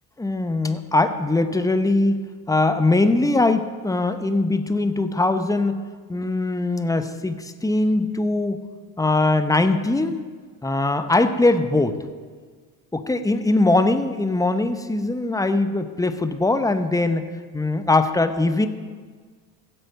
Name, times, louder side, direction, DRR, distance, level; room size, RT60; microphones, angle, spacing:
voice 1, 0.2-2.2 2.5-5.8 6.1-8.6 9.0-10.2 10.6-12.0 12.9-17.2 17.5-18.7, left 2 dB, 5° left, 9 dB, 0.8 m, -21 dB
16.0 x 7.8 x 4.2 m, 1.5 s
hypercardioid pair, 55°, 50 cm